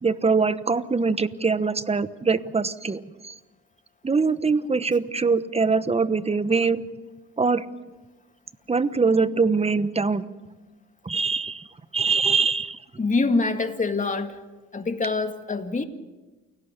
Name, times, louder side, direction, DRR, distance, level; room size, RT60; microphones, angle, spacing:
voice 1, 0.0-3.3 4.0-6.8 7.4-7.6 8.7-10.2 11.0-11.7 11.9-12.8, right 4 dB, 20° right, 14 dB, 1.1 m, -23 dB
voice 2, 13.0-14.4 14.7-15.8, left 3 dB, 25° left, 7 dB, 2.1 m, -25 dB
28.5 x 17.5 x 6.8 m, 1.2 s
cardioid pair, 90°, 30 cm